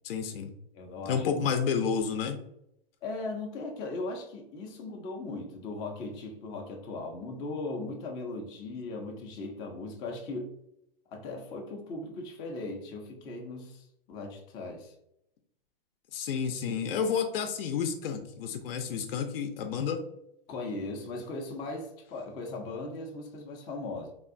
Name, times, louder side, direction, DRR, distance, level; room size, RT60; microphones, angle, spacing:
voice 1, 0.0-0.5 1.1-2.4 16.1-20.0, left 6 dB, 65° left, 7 dB, 0.5 m, -30 dB
voice 2, 0.7-1.2 3.0-10.5 11.1-14.9 20.5-24.1, left 2 dB, 15° left, 1 dB, 0.3 m, -38 dB
3.5 x 2.3 x 2.5 m, 0.78 s
hypercardioid pair, 125°, 30 cm